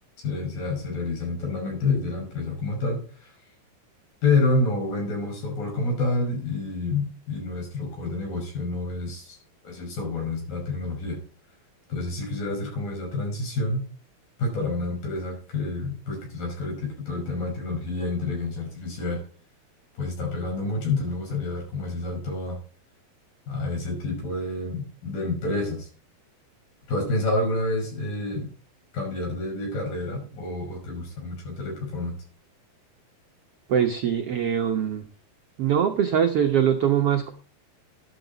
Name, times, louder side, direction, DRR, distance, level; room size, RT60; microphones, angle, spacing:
voice 1, 0.2-3.0 4.2-9.4 9.6-11.2 11.9-13.9 14.4-19.2 20.0-22.6 23.5-25.9 26.9-28.5 28.9-32.2, left 2 dB, 70° left, 0 dB, 7.4 m, -28 dB
voice 2, 33.7-35.0 35.6-37.3, right 8 dB, 75° right, 4 dB, 1.3 m, -22 dB
12.0 x 11.5 x 4.0 m, 0.41 s
omnidirectional pair, 4.2 m